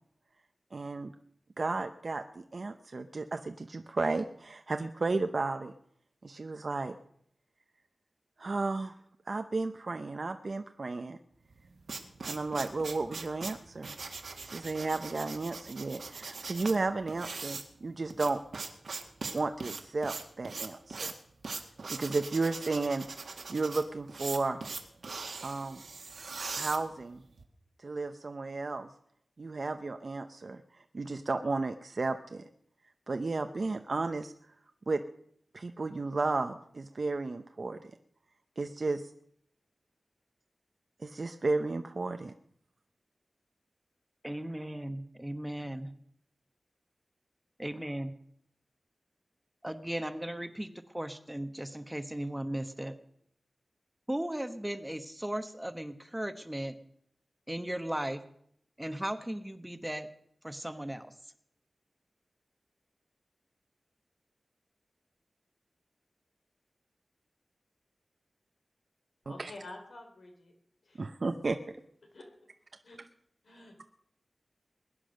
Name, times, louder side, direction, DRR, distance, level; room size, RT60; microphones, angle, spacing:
voice 1, 0.7-1.1 1.6-5.7 6.2-6.9 8.4-8.9 9.3-11.2 12.2-13.9 14.4-18.4 19.3-21.1 21.9-23.1 23.5-24.6 25.4-25.8 26.5-27.2 27.8-28.9 29.4-30.6 30.9-32.4 33.1-34.3 34.9-35.0 35.5-37.8 38.6-39.1 41.0-42.3 69.4-69.5 71.0-71.6, right 3 dB, 60° right, 7 dB, 0.8 m, -33 dB
sound 1, 11.5-27.4, right 4 dB, 90° right, 1.7 m, -41 dB
voice 2, 44.2-45.9 47.6-48.1 49.6-50.7 50.9-52.9 54.1-56.8 57.5-58.2 58.8-60.1 60.4-61.1 71.2-71.3, right 1 dB, 10° right, 10 dB, 1.1 m, -36 dB
voice 3, 69.2-70.5 70.8-71.0 72.0-72.3 72.8-73.0 73.4-73.8, left 2 dB, 80° left, 3 dB, 3.6 m, -49 dB
21.5 x 9.8 x 6.5 m, 0.69 s
wide cardioid pair, 75°, 0 cm